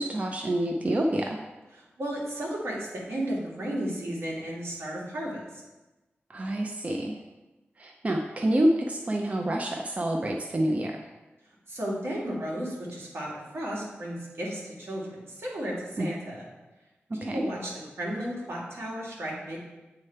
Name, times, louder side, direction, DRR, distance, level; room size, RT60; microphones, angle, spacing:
voice 1, 0.0-1.4 6.3-7.2 7.8-10.9 16.0-16.1 17.1-17.4, right 1 dB, 35° right, 2 dB, 0.5 m, -27 dB
voice 2, 2.0-5.4 11.7-16.5 17.1-17.7 18.0-19.6, right 1 dB, 75° right, -4 dB, 1.8 m, -34 dB
8.4 x 3.3 x 4.4 m, 1.1 s
wide cardioid pair, 100°, 4 cm